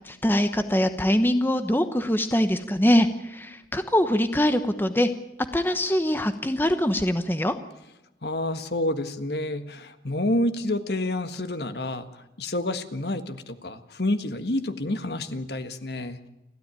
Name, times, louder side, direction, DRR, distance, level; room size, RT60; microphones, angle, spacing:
voice 1, 0.0-5.1 5.5-7.5, equal, 10° left, 9 dB, 1.0 m, -23 dB
voice 2, 8.2-12.1 12.4-16.3, left 1 dB, 65° left, 9 dB, 1.6 m, -28 dB
29.5 x 13.0 x 9.1 m, 0.93 s
head